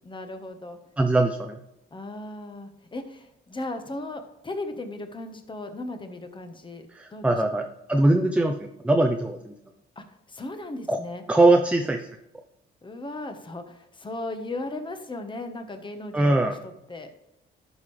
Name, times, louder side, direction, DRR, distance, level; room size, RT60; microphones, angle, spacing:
voice 1, 0.0-0.8 1.9-6.9 7.1-7.2 10.0-11.2 12.8-17.1, left 2 dB, 25° left, 7 dB, 1.2 m, -36 dB
voice 2, 1.0-1.6 6.9-9.5 10.9-11.0 11.3-12.1 16.1-16.6, right 2 dB, 5° right, 5 dB, 0.6 m, -22 dB
11.5 x 5.5 x 3.3 m, 0.88 s
cardioid pair, 90°, 20 cm